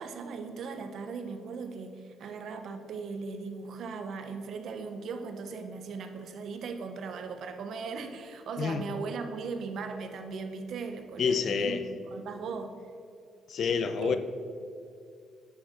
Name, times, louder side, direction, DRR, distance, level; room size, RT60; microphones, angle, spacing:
voice 1, 0.0-12.8 14.0-14.2, right 4 dB, 70° right, 7 dB, 0.9 m, -38 dB
voice 2, 8.6-8.9 11.2-11.8 13.5-14.2, left 6 dB, 60° left, 10 dB, 0.7 m, -28 dB
10.0 x 6.4 x 5.1 m, 2.4 s
cardioid pair, 90°, 0 cm